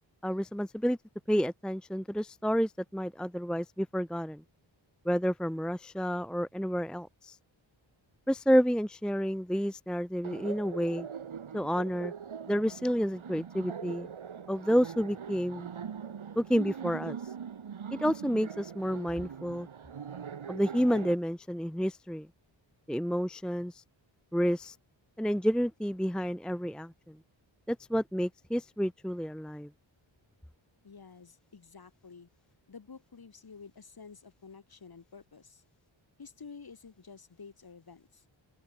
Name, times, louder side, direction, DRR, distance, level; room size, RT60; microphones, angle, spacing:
voice 1, 0.2-1.0 1.3-4.4 5.1-7.4 8.3-11.1 11.5-12.1 12.5-14.1 14.5-15.7 16.4-17.2 18.0-19.7 20.5-22.3 22.9-23.8 24.3-24.7 25.2-27.2 27.7-29.7, equal, ahead, 0.7 m, -30 dB
Laughter, 10.2-21.1, right 7 dB, 90° right, 5.3 m, -42 dB
voice 2, 30.8-32.3 32.7-35.6 36.2-38.2, left 5 dB, 50° left, 6.5 m, -50 dB
open air
wide cardioid pair, 155°, 47 cm